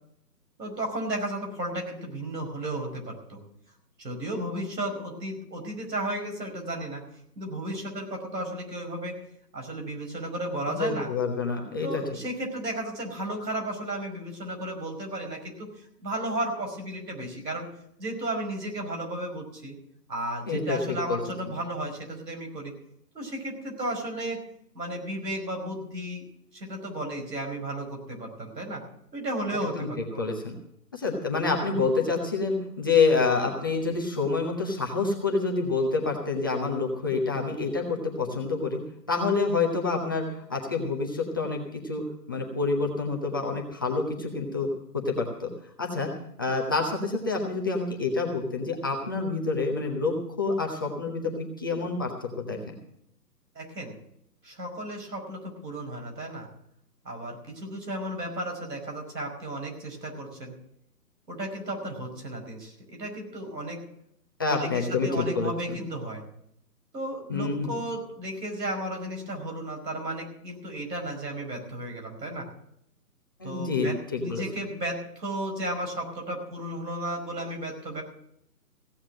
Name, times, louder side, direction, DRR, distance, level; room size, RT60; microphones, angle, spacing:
voice 1, 0.6-3.4 4.0-7.0 7.4-9.2 9.5-11.1 11.8-17.7 18.0-19.8 20.1-22.7 23.1-24.4 24.7-26.2 26.5-28.8 29.1-30.2 53.6-54.0 54.4-56.5 57.1-60.5 61.3-63.8 64.5-66.2 66.9-72.5 73.4-78.0, right 1 dB, 85° right, 2 dB, 5.2 m, -34 dB
voice 2, 10.7-12.0 20.5-21.2 21.5-21.6 29.6-29.9 30.2-30.5 30.9-38.8 39.1-44.7 45.0-45.5 45.8-46.1 46.4-52.7 64.4-65.8 67.3-67.7 73.4-74.4, left 4 dB, 15° left, -1 dB, 0.8 m, -27 dB
16.0 x 7.2 x 7.7 m, 0.73 s
hypercardioid pair, 160°, 48 cm